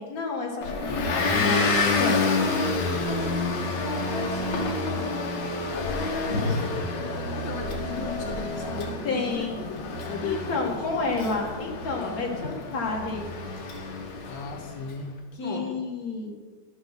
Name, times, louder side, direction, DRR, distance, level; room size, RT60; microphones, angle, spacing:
voice 1, 0.0-1.6 2.0-2.7 3.1-3.3 3.8-5.4 5.8-6.7 9.0-9.7 10.2-13.3 15.4-16.4, left 3 dB, 50° left, 0 dB, 2.2 m, -31 dB
Motor vehicle (road) / Engine, 0.6-14.8, left 3 dB, 70° left, 1.8 m, -29 dB
voice 2, 7.3-10.8 12.0-12.3 14.3-15.1 15.4-15.8, left 4 dB, 85° left, 3 dB, 1.7 m, -36 dB
11.5 x 6.7 x 6.0 m, 1.5 s
omnidirectional pair, 2.0 m